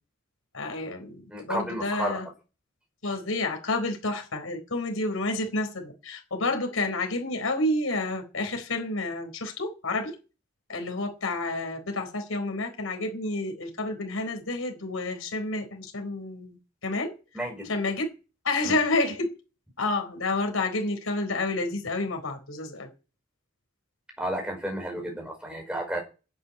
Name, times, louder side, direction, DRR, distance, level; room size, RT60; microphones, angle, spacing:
voice 1, 0.5-2.3 3.0-10.1 10.7-17.1 17.7-18.0 18.4-19.3 19.8-22.9, left 2 dB, 85° left, 4.3 m, -29 dB
voice 2, 1.3-2.2 17.3-17.7 18.7-18.8 24.2-26.0, right 1 dB, 5° right, 5.3 m, -32 dB
11.0 x 9.1 x 9.6 m
head